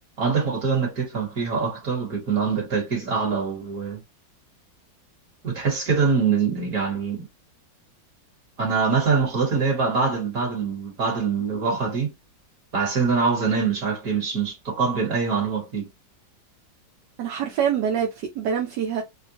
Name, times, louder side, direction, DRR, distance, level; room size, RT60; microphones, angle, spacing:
voice 1, 0.2-4.0 5.4-7.3 8.6-12.1 12.7-15.9, right 5 dB, 50° right, 2.2 m, -24 dB
voice 2, 17.2-19.0, right 8 dB, 70° right, 1.2 m, -25 dB
4.4 x 2.2 x 2.7 m
omnidirectional pair, 2.0 m